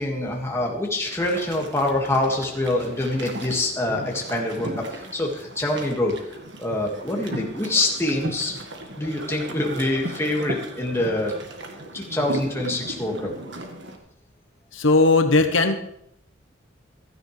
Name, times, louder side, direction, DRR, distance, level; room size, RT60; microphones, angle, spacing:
voice 1, 0.0-8.6 9.0-11.4 11.9-13.3, left 1 dB, 15° left, -1 dB, 1.9 m, -25 dB
sound 1, 1.0-14.0, right 1 dB, 60° right, 1.6 m, -36 dB
voice 2, 14.7-15.8, left 3 dB, 80° left, 7 dB, 1.1 m, -18 dB
15.5 x 13.0 x 3.3 m, 0.75 s
head